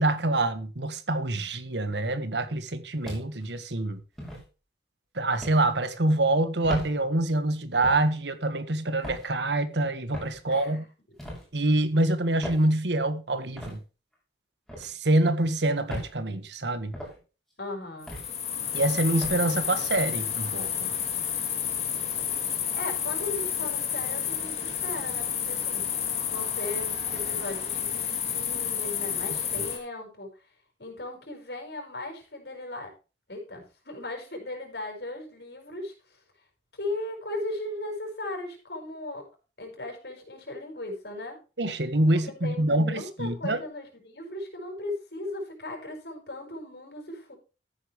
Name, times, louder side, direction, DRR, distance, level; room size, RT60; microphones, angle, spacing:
voice 1, 0.0-4.0 5.1-10.8 11.5-13.8 14.8-16.9 18.7-20.9 29.6-29.7 41.6-43.6, right 2 dB, 85° right, 1.6 m, -26 dB
sound 1, 3.0-3.5 4.2-4.4 5.4-5.6 6.6-6.9 7.8-8.1 9.0-9.3 10.1-10.4 11.2-11.5 12.4-12.7 13.6-13.8 14.7-14.9 15.9-16.1 16.9-17.2 18.1-18.3 19.2-19.4, equal, ahead, 6.2 m, -37 dB
voice 2, 10.5-10.9 17.6-18.1 22.7-25.9 26.3-30.3 30.8-32.9 33.3-35.9 36.7-39.3 39.6-41.4 42.2-47.4, left 2 dB, 70° left, 6.0 m, -37 dB
Crickets at night, 18.0-29.8, left 8 dB, 35° left, 2.8 m, -30 dB
14.0 x 10.0 x 3.3 m
head